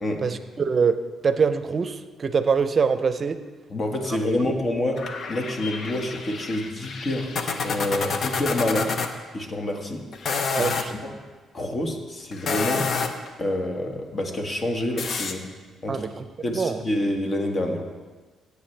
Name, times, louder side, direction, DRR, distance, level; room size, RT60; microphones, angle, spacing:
voice 1, 0.2-3.4 4.4-4.5 10.5-10.9 15.9-16.2 16.5-16.8, right 5 dB, 40° right, 11 dB, 0.6 m, -24 dB
voice 2, 3.7-5.0 5.3-7.3 7.6-8.9 9.3-10.0 10.5-11.1 11.5-12.9 13.4-15.4 15.8-16.1 16.4-17.8, left 1 dB, 40° left, 3 dB, 1.6 m, -27 dB
sound 1, 5.0-9.1 10.1-10.9 12.3-13.3 15.0-15.3, left 4 dB, 55° left, 0.8 m, -29 dB
15.5 x 8.2 x 3.4 m, 1.3 s
cardioid pair, 90°, 0 cm